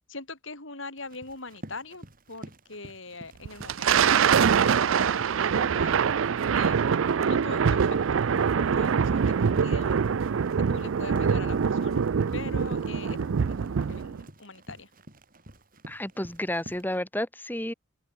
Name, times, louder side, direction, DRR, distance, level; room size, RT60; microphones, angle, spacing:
voice 1, 0.1-6.0 6.5-8.2 8.5-10.0 10.7-14.9, left 3 dB, 70° left, 6.8 m, -42 dB
Run, 1.0-17.0, right 1 dB, 45° right, 6.8 m, -48 dB
Thunder, 3.5-14.2, right 6 dB, 75° right, 0.4 m, -24 dB
voice 2, 15.9-17.7, left 1 dB, 10° left, 3.1 m, -31 dB
open air
head